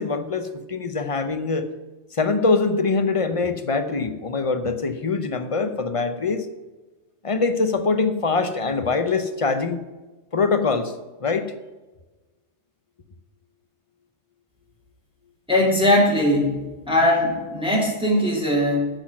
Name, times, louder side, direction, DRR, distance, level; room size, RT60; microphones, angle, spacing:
voice 1, 0.0-1.7 2.1-6.5 7.2-9.8 10.3-10.9 11.2-11.5, left 4 dB, 35° left, 9 dB, 0.7 m, -23 dB
voice 2, 15.5-16.6 16.9-18.9, left 1 dB, 5° right, -3 dB, 2.3 m, -20 dB
8.6 x 8.1 x 6.0 m, 1.2 s
omnidirectional pair, 1.2 m